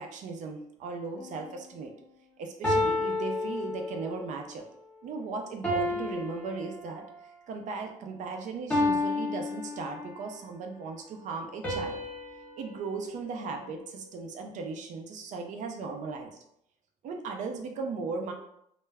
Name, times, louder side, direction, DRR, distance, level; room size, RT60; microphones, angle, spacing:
voice 1, 0.0-1.9 2.4-4.7 5.0-12.0 12.6-16.3 17.0-18.3, right 4 dB, 60° right, 3 dB, 0.5 m, -37 dB
sound 1, 1.2-1.5 2.6-4.3 5.6-7.3 8.7-10.3 11.6-14.1, left 2 dB, 10° left, 0.7 m, -32 dB
2.3 x 2.1 x 3.3 m, 0.74 s
cardioid pair, 155°, 15 cm